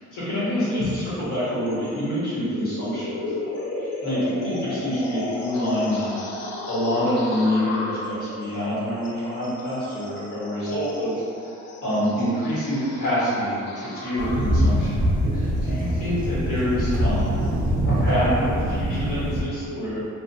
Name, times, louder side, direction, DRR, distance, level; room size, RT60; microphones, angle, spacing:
voice 1, 0.0-6.1 6.7-11.2 11.8-15.0 15.3-17.5 18.0-20.0, equal, 90° left, -11 dB, 1.3 m, -26 dB
sound 1, 0.8-17.7, left 2 dB, 60° left, 0.5 m, -34 dB
sound 2, 14.2-19.4, equal, 30° right, 0.4 m, -23 dB
2.4 x 2.2 x 2.6 m, 2.6 s
cardioid pair, 90°, 30 cm